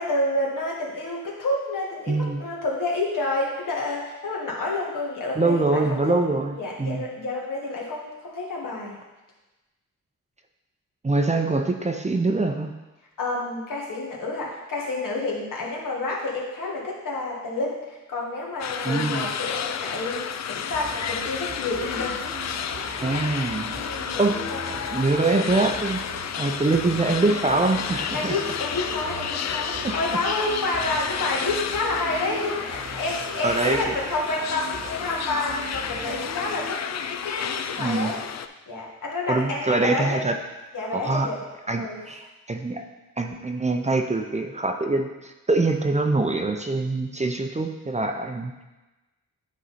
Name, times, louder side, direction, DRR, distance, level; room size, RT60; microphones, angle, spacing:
voice 1, 0.0-6.2 6.5-9.0 13.2-22.2 23.5-24.6 28.1-38.2 38.7-40.2 40.7-41.4 41.8-42.0, left 2 dB, 70° left, -3 dB, 1.8 m, -29 dB
voice 2, 2.1-2.4 5.4-7.1 11.0-12.7 18.8-19.3 23.0-24.4 24.7-26.0 26.4-28.3 29.8-30.0 33.4-33.8 37.8-38.2 39.3-40.3 40.9-41.3 41.7-42.8 43.2-48.6, right 3 dB, 20° right, 4 dB, 0.6 m, -24 dB
sound 1, 18.6-38.5, left 8 dB, 55° left, 0.4 m, -31 dB
sound 2, 20.7-36.7, right 3 dB, 45° right, 1.0 m, -40 dB
9.3 x 3.8 x 4.2 m, 1.1 s
cardioid pair, 80°, 33 cm